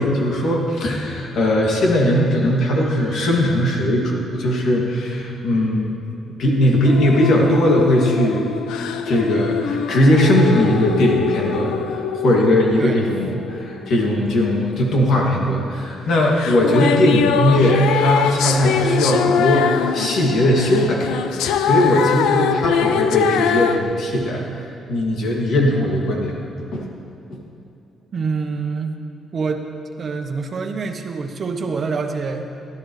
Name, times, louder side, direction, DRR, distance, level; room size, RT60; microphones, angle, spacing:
voice 1, 0.0-5.9 6.4-8.4 9.1-24.4 24.9-26.8 27.3-27.4, left 1 dB, 70° left, -1 dB, 2.4 m, -19 dB
sound 1, 6.9-13.9 16.3-23.8, left 7 dB, 90° left, 0.5 m, -22 dB
voice 2, 28.1-29.0 29.3-29.7 30.0-32.5, right 4 dB, 45° right, 5 dB, 1.1 m, -26 dB
17.5 x 12.0 x 3.3 m, 2.8 s
cardioid pair, 90°, 0 cm